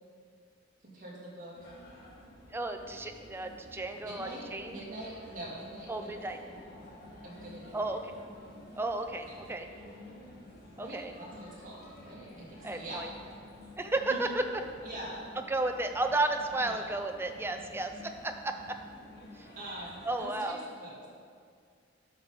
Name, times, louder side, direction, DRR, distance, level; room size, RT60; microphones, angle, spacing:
voice 1, 0.8-1.7 4.0-6.1 6.4-6.6 7.2-8.1 9.2-9.4 10.8-13.0 14.1-14.2 14.8-15.3 16.6-16.9 19.6-21.1, right 1 dB, 40° right, -5 dB, 2.2 m, -44 dB
sound 1, 1.5-20.2, left 1 dB, 50° left, 2.3 m, -51 dB
voice 2, 2.5-4.8 5.9-6.4 7.7-8.0 8.8-9.7 10.8-11.1 12.6-13.1 13.8-14.4 15.5-18.8 19.4-19.5 20.0-20.6, right 2 dB, 10° right, 5 dB, 0.4 m, -33 dB
11.5 x 5.4 x 4.0 m, 2.2 s
head